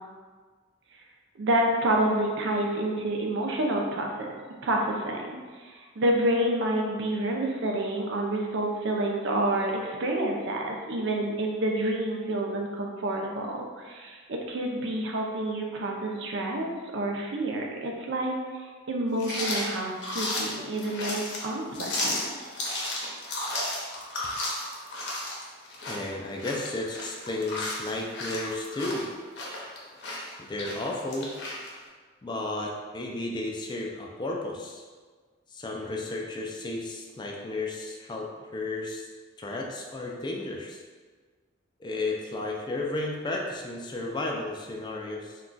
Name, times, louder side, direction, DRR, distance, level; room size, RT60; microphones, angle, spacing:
voice 1, 1.4-4.3 4.6-5.3 5.6-16.7 16.9-22.2, right 1 dB, 65° right, 1 dB, 0.5 m, -28 dB
sound 1, 19.2-31.7, left 1 dB, 60° left, 0.6 m, -34 dB
voice 2, 25.9-29.1 30.4-31.3 32.2-34.8 35.5-39.1 39.4-40.8 41.8-45.4, left 2 dB, 20° left, -1 dB, 0.3 m, -33 dB
2.3 x 2.2 x 3.8 m, 1.5 s
head